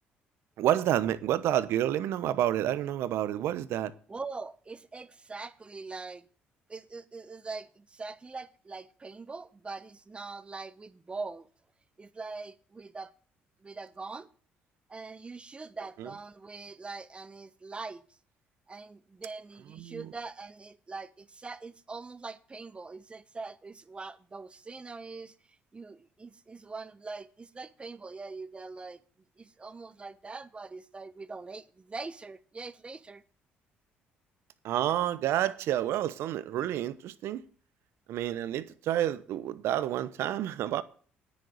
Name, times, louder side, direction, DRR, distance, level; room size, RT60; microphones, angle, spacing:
voice 1, 0.6-3.9 16.0-16.1 19.7-20.1 34.6-37.4 38.1-40.8, right 12 dB, 70° right, 0.9 m, -29 dB
voice 2, 4.1-6.3 6.7-11.5 12.0-13.1 13.6-14.3 14.9-18.0 18.7-25.3 25.7-29.0 29.4-33.2, right 4 dB, 25° right, 1.0 m, -42 dB
9.8 x 6.6 x 7.8 m
supercardioid pair, 75°, 4 cm